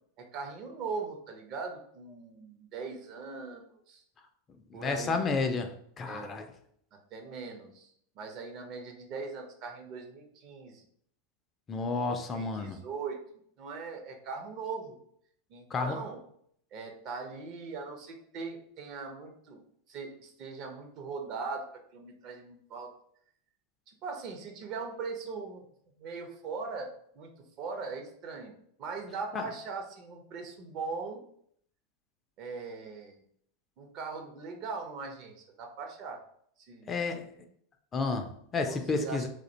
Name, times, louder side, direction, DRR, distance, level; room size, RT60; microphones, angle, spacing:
voice 1, 0.2-4.0 4.7-5.2 6.1-6.3 7.1-10.8 12.1-13.2 13.6-15.0 15.5-16.2 16.7-19.6 19.9-21.7 21.9-22.9 23.9-25.7 26.0-31.2 32.4-33.2 33.8-36.2 36.6-37.0 38.6-39.3, right 4 dB, 50° right, 3 dB, 0.5 m, -40 dB
voice 2, 4.7-5.7 6.0-6.5 11.7-12.8 15.7-16.0 29.3-29.4 36.9-37.3 37.9-39.3, left 4 dB, 30° left, 6 dB, 0.3 m, -31 dB
2.3 x 2.1 x 2.7 m, 0.66 s
hypercardioid pair, 90°, 0 cm